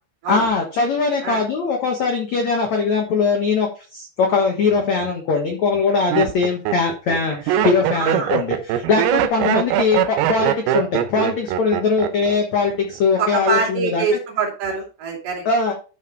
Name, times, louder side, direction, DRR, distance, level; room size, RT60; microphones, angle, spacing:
voice 1, 0.3-14.2 15.4-15.7, left 4 dB, 80° left, 2 dB, 1.6 m, -21 dB
Laughter, 4.7-5.1 5.7-12.4 12.6-13.1, right 11 dB, 80° right, 2.2 m, -22 dB
voice 2, 7.9-8.4 13.2-15.4, right 5 dB, 60° right, -1 dB, 4.5 m, -24 dB
12.0 x 5.3 x 3.3 m, 0.35 s
omnidirectional pair, 5.3 m